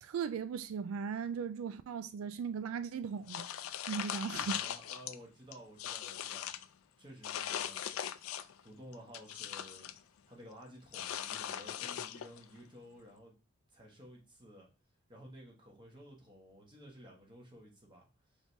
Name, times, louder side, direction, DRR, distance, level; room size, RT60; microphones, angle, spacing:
voice 1, 0.0-3.5 3.9-4.6, right 6 dB, 75° right, 0.3 m, -38 dB
sound 1, 3.3-5.1 5.5-6.7 7.2-8.6 8.9-10.0 10.9-12.4, left 10 dB, 75° left, 0.3 m, -40 dB
voice 2, 4.3-6.5 7.0-8.1 8.6-9.9 10.2-13.4 13.7-14.7 15.1-18.0, equal, 25° right, 1.2 m, -54 dB
5.1 x 3.2 x 2.6 m
head